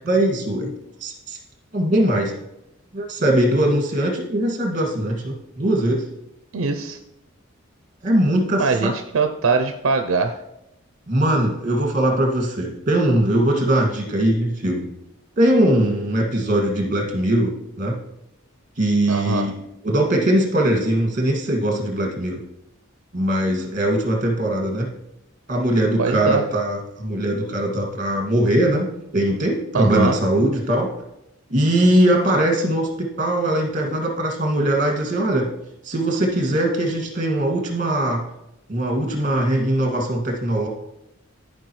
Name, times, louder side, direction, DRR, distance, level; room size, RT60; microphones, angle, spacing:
voice 1, 0.0-0.7 1.0-1.4 1.7-2.3 2.9-6.1 8.0-8.9 11.1-14.9 15.4-18.0 18.8-22.4 23.1-24.9 25.5-28.9 29.1-30.9 31.5-35.5 35.8-38.2 38.7-40.7, right 1 dB, 40° right, 1 dB, 2.0 m, -21 dB
voice 2, 6.5-7.0 8.6-10.4 19.1-19.5 26.0-26.4 29.7-30.2, right 4 dB, 75° right, 6 dB, 0.5 m, -21 dB
14.0 x 5.0 x 3.1 m, 0.88 s
head